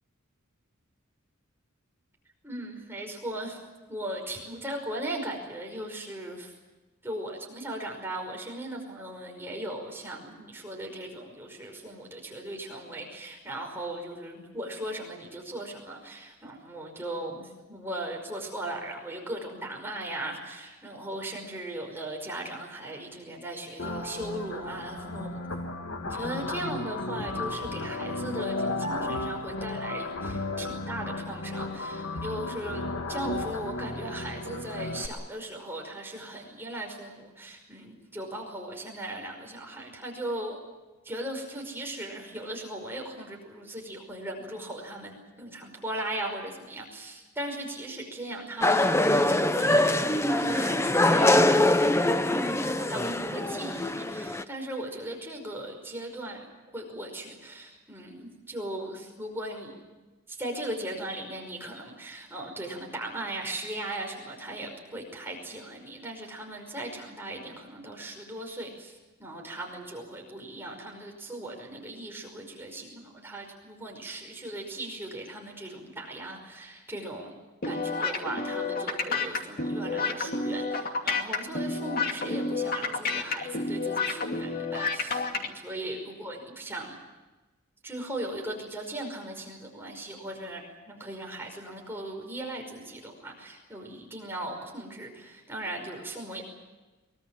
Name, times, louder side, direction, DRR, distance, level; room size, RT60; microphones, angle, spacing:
voice 1, 2.4-3.6 3.9-6.5 7.0-25.4 25.9-32.8 33.1-40.6 41.0-56.5 56.7-59.8 60.3-77.3 77.7-87.0 87.8-96.4, right 1 dB, 10° right, 0 dB, 5.3 m, -38 dB
sound 1, 23.8-35.1, left 2 dB, 75° left, 2.0 m, -34 dB
sound 2, 48.6-54.4, left 1 dB, 10° left, 0.7 m, -23 dB
sound 3, 77.6-85.5, left 4 dB, 45° left, 2.6 m, -30 dB
24.0 x 23.0 x 7.5 m, 1.2 s
head